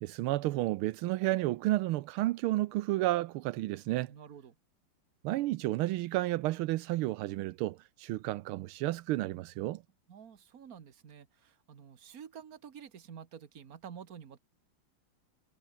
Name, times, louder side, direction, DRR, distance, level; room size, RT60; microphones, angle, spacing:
voice 1, 0.0-4.1 5.2-9.8, right 17 dB, 85° right, 1.5 m, -31 dB
voice 2, 4.1-4.6 10.1-14.4, right 7 dB, 45° right, 1.8 m, -49 dB
omnidirectional pair, 2.4 m